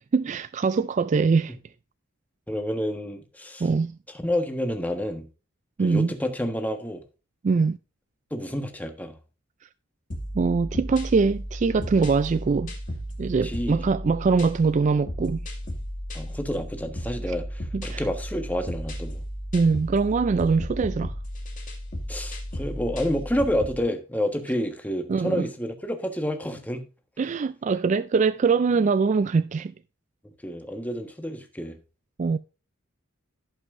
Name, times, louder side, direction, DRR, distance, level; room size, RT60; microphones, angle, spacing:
voice 1, 0.1-1.5 3.6-4.0 5.8-6.1 7.4-7.8 10.3-12.7 13.2-15.4 17.7-18.0 19.5-21.1 25.1-25.5 27.2-29.7 32.2-32.4, right 4 dB, 35° right, 0.3 m, -23 dB
voice 2, 2.5-3.7 4.2-5.3 5.8-7.0 8.3-9.1 13.4-13.8 16.1-19.2 22.1-26.9 30.4-31.8, equal, 10° left, 1.3 m, -29 dB
sound 1, 10.1-23.8, equal, 40° left, 2.2 m, -34 dB
16.5 x 5.6 x 2.6 m
head